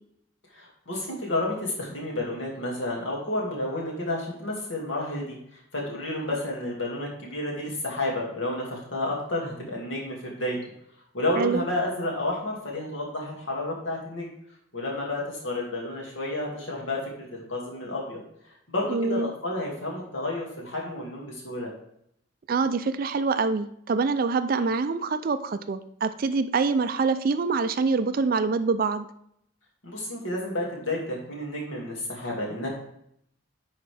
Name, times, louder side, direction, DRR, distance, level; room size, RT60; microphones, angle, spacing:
voice 1, 0.5-5.4 5.7-10.6 11.1-14.3 14.7-17.0 17.3-18.2 18.7-21.7 29.8-32.7, left 1 dB, 70° left, -2 dB, 2.3 m, -31 dB
voice 2, 18.9-19.3 22.5-29.1, right 4 dB, 45° right, 11 dB, 0.4 m, -25 dB
10.0 x 4.3 x 3.4 m, 0.72 s
head